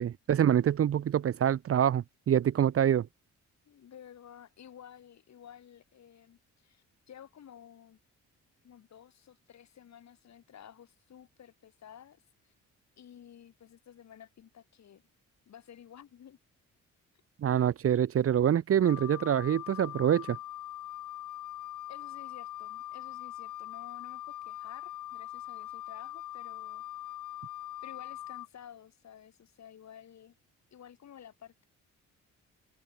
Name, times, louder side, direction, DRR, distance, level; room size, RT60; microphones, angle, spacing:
voice 1, 0.0-3.1 17.4-20.4, right 9 dB, 50° right, 0.8 m, -26 dB
voice 2, 3.7-8.0 8.6-12.5 13.0-15.0 15.5-16.4 21.9-26.8 27.8-30.3 30.7-31.6, left 9 dB, 60° left, 7.3 m, -53 dB
Wind instrument woodwind instrument, 18.8-28.5, left 13 dB, 90° left, 2.8 m, -42 dB
open air
cardioid pair, 120°, 30 cm